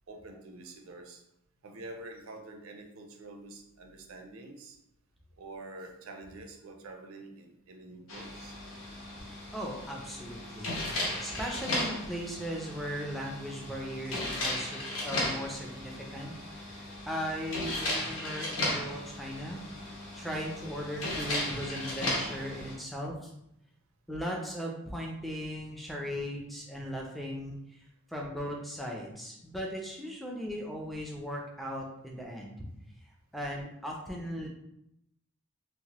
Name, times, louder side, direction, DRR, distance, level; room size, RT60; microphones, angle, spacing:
voice 1, 0.1-1.2 1.6-4.8 5.4-8.5 10.7-11.0, right 2 dB, 75° right, 4 dB, 0.4 m, -47 dB
sound 1, 8.1-22.8, left 1 dB, 75° left, 0.8 m, -36 dB
voice 2, 9.5-10.7 11.2-16.7 17.1-19.6 20.1-23.3 24.1-27.8 28.1-32.6 33.3-34.5, equal, ahead, -2 dB, 0.3 m, -38 dB
2.8 x 2.0 x 2.8 m, 0.79 s
head